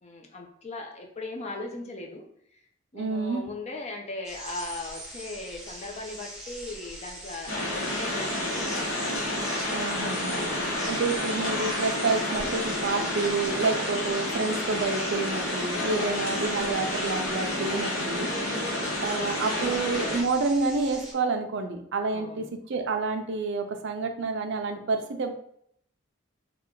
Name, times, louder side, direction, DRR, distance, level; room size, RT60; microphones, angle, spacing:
voice 1, 0.0-2.3 2.9-9.0 10.5-11.0 18.4-18.9 22.1-22.5, left 2 dB, 35° left, 2 dB, 0.5 m, -39 dB
voice 2, 2.9-3.5 9.7-10.4 10.9-18.3 19.0-25.4, right 3 dB, 65° right, 5 dB, 0.5 m, -29 dB
sound 1, 4.2-21.1, right 1 dB, 5° right, 0.8 m, -42 dB
sound 2, 7.5-20.2, left 1 dB, 70° left, 1.1 m, -30 dB
3.2 x 2.3 x 3.7 m, 0.68 s
head